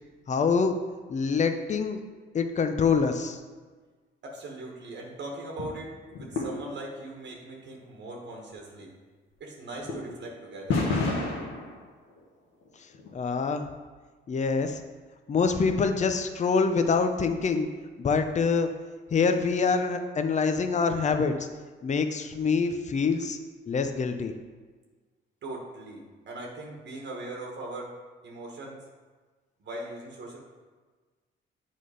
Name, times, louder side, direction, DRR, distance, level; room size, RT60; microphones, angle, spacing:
voice 1, 0.3-0.8 1.1-2.0 2.3-3.4 13.1-13.7 14.3-14.8 15.3-17.7 18.0-18.7 19.1-21.3 21.8-23.4 23.7-24.3, left 5 dB, 35° left, 7 dB, 0.7 m, -25 dB
voice 2, 4.2-8.9 9.4-10.8 25.4-27.9 28.2-28.8 29.6-30.4, right 2 dB, 65° right, -1 dB, 1.3 m, -40 dB
sound 1, 5.4-5.7 6.1-7.0 7.3-7.4 7.7-7.8 8.8-8.9 9.7-10.3 10.7-12.2 12.6-13.1 13.4-13.5, left 3 dB, 80° left, 1.6 m, -30 dB
7.4 x 4.2 x 4.9 m, 1.4 s
cardioid pair, 90°, 20 cm